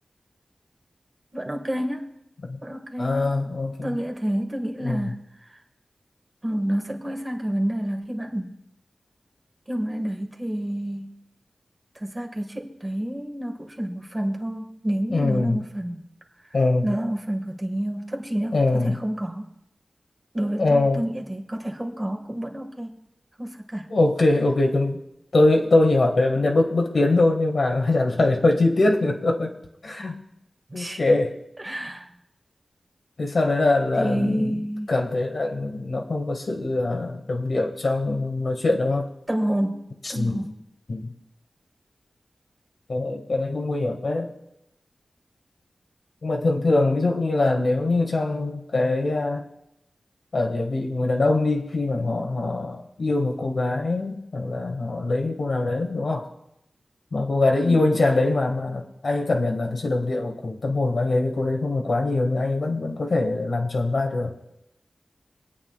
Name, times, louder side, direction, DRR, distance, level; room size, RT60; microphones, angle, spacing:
voice 1, 1.3-2.1 2.6-3.4 3.8-5.6 6.4-8.6 9.7-11.1 12.0-16.0 16.8-19.5 20.3-23.0 23.4-23.9 30.7-31.0 31.6-32.1 34.0-34.9 39.3-40.5 57.6-57.9, right 1 dB, 25° right, 2 dB, 1.9 m, -29 dB
voice 2, 3.0-3.9 4.8-5.1 15.1-15.6 16.5-16.9 18.5-19.0 20.6-21.0 23.9-25.0 25.3-29.5 29.8-30.2 30.7-31.4 33.2-34.6 34.9-39.1 40.2-40.4 40.9-41.1 42.9-44.3 46.2-49.4 50.3-56.3 57.1-64.3, left 2 dB, 70° left, 2 dB, 1.8 m, -23 dB
25.5 x 8.8 x 2.4 m, 0.82 s
wide cardioid pair, 70°, 0 cm